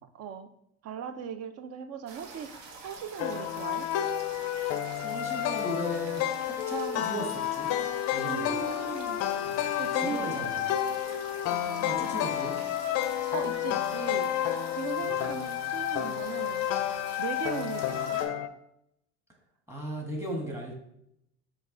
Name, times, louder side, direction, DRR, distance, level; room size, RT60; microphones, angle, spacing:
voice 1, 0.1-0.5 0.8-2.5 2.8-3.9 8.2-9.3 9.8-11.0 11.5-12.3 13.3-14.3 14.7-16.7 17.2-18.2, right 7 dB, 45° right, 10 dB, 0.5 m, -38 dB
sound 1, 2.1-18.3, right 4 dB, 70° right, 1.0 m, -47 dB
sound 2, 3.2-18.5, left 11 dB, 45° left, 0.4 m, -30 dB
voice 2, 4.6-7.7 8.1-8.6 9.4-10.7 11.8-12.6 15.0-15.1 19.7-20.7, equal, 5° right, 0 dB, 1.3 m, -37 dB
5.2 x 2.4 x 3.7 m, 0.77 s
supercardioid pair, 90°, 34 cm